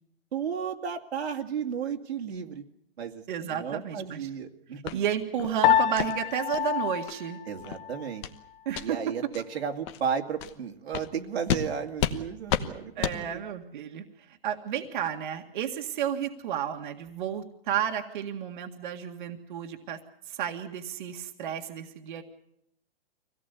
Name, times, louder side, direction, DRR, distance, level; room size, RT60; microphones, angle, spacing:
voice 1, 0.3-2.6 3.0-4.8 7.5-8.2 8.8-13.4, right 7 dB, 80° right, 3 dB, 2.4 m, -33 dB
voice 2, 3.3-4.3 4.9-7.4 8.7-9.0 13.0-20.0 20.3-22.2, right 9 dB, 50° right, 4 dB, 1.9 m, -32 dB
sound 1, 4.9-5.0 5.4-5.5 6.0-6.1 6.5-6.6 7.1-7.2 7.6-7.8 8.2-8.4 8.7-8.9 9.3-9.4 9.9-10.0 10.4-10.5 10.9-11.1 11.5-11.6 12.0-12.2 12.5-12.7 13.0-13.2, left 10 dB, 25° left, 1.1 m, -30 dB
Piano, 5.6-8.2, left 10 dB, 50° left, 1.2 m, -27 dB
25.0 x 17.5 x 8.3 m, 0.76 s
hypercardioid pair, 160°, 32 cm